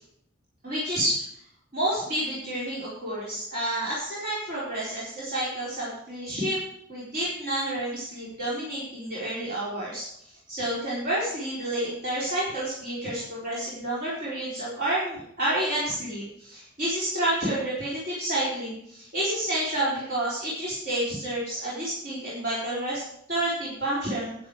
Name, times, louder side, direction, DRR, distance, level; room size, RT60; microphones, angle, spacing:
voice 1, 0.6-1.2 1.7-6.6 6.9-10.0 10.5-23.0 23.3-24.3, right 1 dB, 50° right, -8 dB, 4.2 m, -29 dB
11.0 x 9.3 x 4.9 m, 0.71 s
head